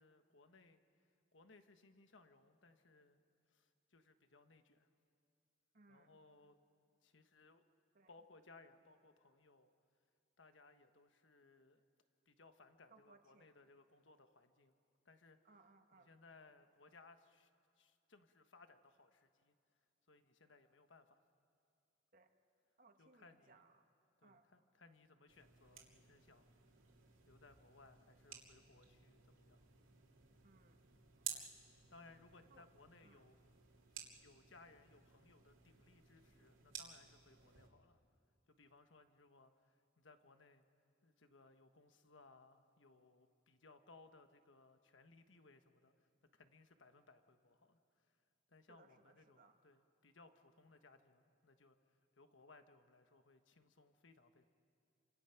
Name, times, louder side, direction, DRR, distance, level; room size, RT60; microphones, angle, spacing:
voice 1, 0.0-3.2 3.5-4.9 5.9-6.6 7.0-7.6 8.1-9.7 10.4-11.8 12.2-14.7 15.0-15.4 15.9-17.5 17.8-19.5 20.1-21.2 23.0-23.6 24.2-26.5 27.3-29.7 31.9-33.3 34.2-38.0 38.5-40.6 41.0-48.2 48.5-54.5, left 3 dB, 70° left, 8 dB, 1.3 m, -65 dB
voice 2, 5.7-6.2 7.9-8.1 12.9-13.5 15.4-16.1 22.1-22.3 22.8-23.8 24.2-24.4 30.4-30.9 31.1-31.5 32.5-32.7 33.0-33.3 48.7-49.6, right 3 dB, 45° right, 5 dB, 1.5 m, -67 dB
sound 1, 25.3-37.7, right 9 dB, 85° right, 2.7 m, -55 dB
30.0 x 25.5 x 5.9 m, 2.5 s
head